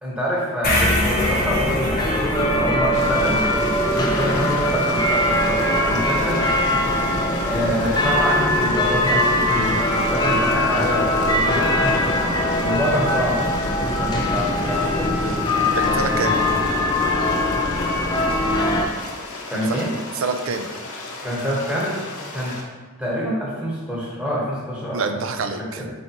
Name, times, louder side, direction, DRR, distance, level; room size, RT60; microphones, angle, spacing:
voice 1, 0.0-3.4 3.9-5.6 5.9-6.5 7.4-12.0 12.6-15.3 15.7-16.6 19.5-19.9 21.2-22.0 22.3-22.5 23.0-25.0 25.6-25.9, equal, 5° right, -6 dB, 1.1 m, -26 dB
sound 1, 0.6-4.8, left 1 dB, 45° left, 1.0 m, -26 dB
sound 2, 0.7-18.9, left 1 dB, 20° left, 0.4 m, -21 dB
sound 3, 2.9-22.6, left 2 dB, 80° left, 0.8 m, -35 dB
voice 2, 15.8-16.4 19.5-19.8 20.1-20.7 24.9-25.8, right 4 dB, 65° right, 7 dB, 0.4 m, -26 dB
4.6 x 4.0 x 2.9 m, 1.3 s
head